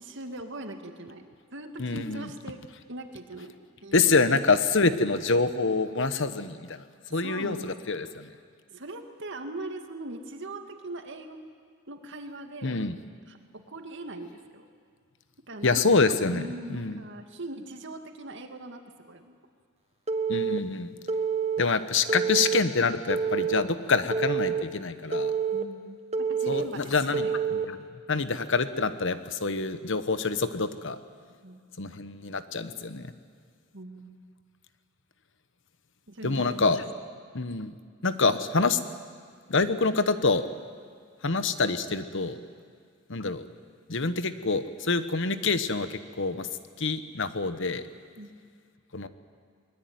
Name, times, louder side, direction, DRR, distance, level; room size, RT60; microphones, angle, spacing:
voice 1, 0.0-2.6 2.9-3.5 3.8-4.1 7.1-7.7 8.7-11.4 11.9-12.8 13.3-14.7 15.5-15.8 16.3-18.8 19.1-19.4 25.5-27.4 31.4-31.6 33.7-34.2 36.1-36.8 48.2-48.3, right 2 dB, 60° right, 6 dB, 2.2 m, -41 dB
voice 2, 1.8-2.3 3.9-6.8 7.1-8.3 12.6-13.0 15.6-16.4 16.7-17.0 20.3-20.9 21.6-25.3 26.5-27.8 28.1-31.0 31.8-33.1 36.2-36.8 37.3-37.7 38.0-38.8 39.5-40.4 41.2-42.4 43.1-43.4 43.9-46.5 46.8-47.8 48.9-49.1, left 4 dB, 60° left, 11 dB, 1.3 m, -26 dB
Telephone, 20.1-20.6 21.1-21.6 22.1-22.6 23.1-23.6 24.1-24.6 25.1-25.6 26.1-26.6 27.1-27.6, right 6 dB, 30° right, 1.2 m, -27 dB
24.0 x 21.0 x 9.5 m, 2.1 s
head